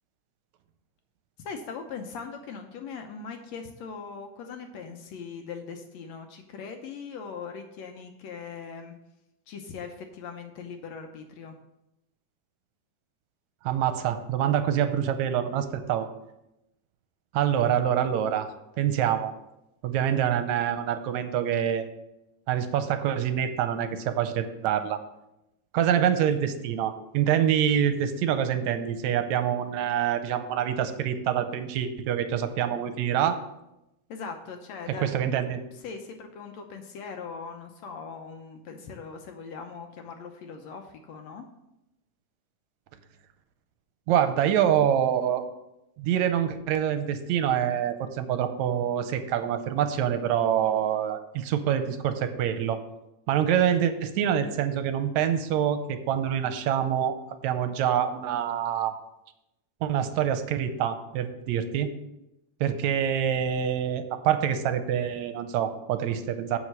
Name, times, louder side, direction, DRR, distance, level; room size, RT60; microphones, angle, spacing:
voice 1, 1.4-8.9 9.5-11.5 34.1-35.3 35.7-41.5, left 5 dB, 70° left, 5 dB, 1.8 m, -40 dB
voice 2, 13.6-16.1 17.3-18.5 18.8-19.3 19.8-21.9 22.5-25.0 25.7-33.4 35.0-35.6 44.1-45.4 46.0-52.8 53.3-58.9 59.8-61.9 62.6-66.6, right 9 dB, 75° right, 9 dB, 1.9 m, -26 dB
7.9 x 6.4 x 6.5 m, 0.89 s
omnidirectional pair, 3.6 m